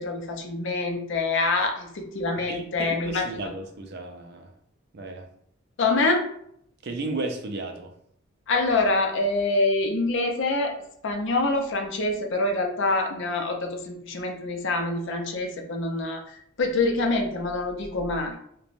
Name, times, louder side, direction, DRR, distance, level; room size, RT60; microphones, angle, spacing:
voice 1, 0.0-3.5 5.8-6.3 8.5-18.4, left 2 dB, 60° left, 3 dB, 0.5 m, -26 dB
voice 2, 2.4-4.5 4.9-5.3 6.8-7.9, right 2 dB, 50° right, 4 dB, 0.5 m, -34 dB
3.0 x 2.2 x 2.5 m, 0.68 s
head